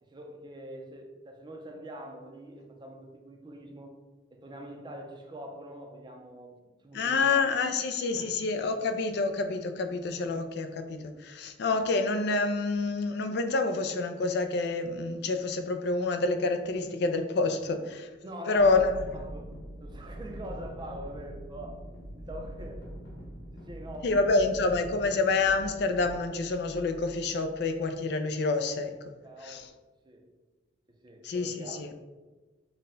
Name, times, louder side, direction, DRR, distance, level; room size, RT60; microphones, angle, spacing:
voice 1, 0.0-4.0 4.3-7.5 8.1-8.4 18.2-18.9 19.1-21.8 22.2-22.9 23.5-24.3 29.2-29.7 30.0-30.3 30.9-31.8, right 1 dB, 25° right, 2 dB, 0.5 m, -44 dB
voice 2, 6.9-18.1 18.5-19.0 24.0-29.1 29.4-29.7 31.2-31.9, left 3 dB, 60° left, 7 dB, 0.4 m, -28 dB
sound 1, 18.5-27.8, right 1 dB, 85° left, 0.8 m, -43 dB
4.1 x 2.2 x 3.7 m, 1.2 s
head